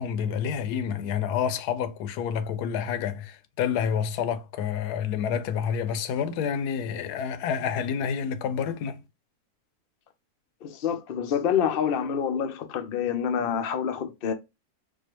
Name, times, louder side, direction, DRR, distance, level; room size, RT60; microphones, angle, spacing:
voice 1, 0.0-9.0, left 7 dB, 80° left, 1.1 m, -28 dB
voice 2, 10.6-14.3, left 8 dB, 65° left, 0.5 m, -27 dB
4.4 x 2.4 x 2.9 m
omnidirectional pair, 1.7 m